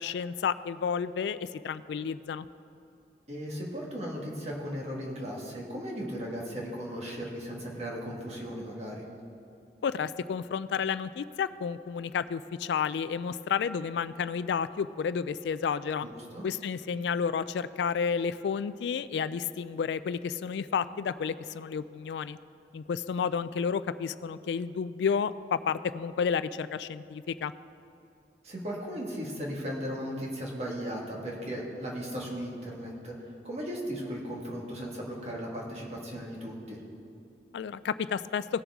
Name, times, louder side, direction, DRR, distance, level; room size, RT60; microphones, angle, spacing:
voice 1, 0.0-2.5 9.8-16.1 16.4-22.4 22.7-27.5 37.5-38.4, left 6 dB, 75° left, 15 dB, 0.3 m, -31 dB
voice 2, 3.3-9.1 16.0-16.4 28.4-36.8, equal, 35° right, -2 dB, 1.8 m, -37 dB
17.5 x 7.0 x 3.6 m, 2.7 s
head